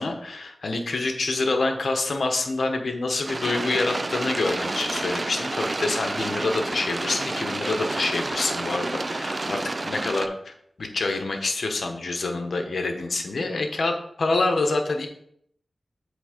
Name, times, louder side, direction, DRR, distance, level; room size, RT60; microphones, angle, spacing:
voice 1, 0.0-10.5 10.8-15.1, left 3 dB, 75° left, 4 dB, 1.1 m, -27 dB
sound 1, 3.3-10.3, right 2 dB, 40° right, 0.5 m, -29 dB
7.9 x 3.5 x 5.1 m, 0.68 s
cardioid pair, 50°, 0 cm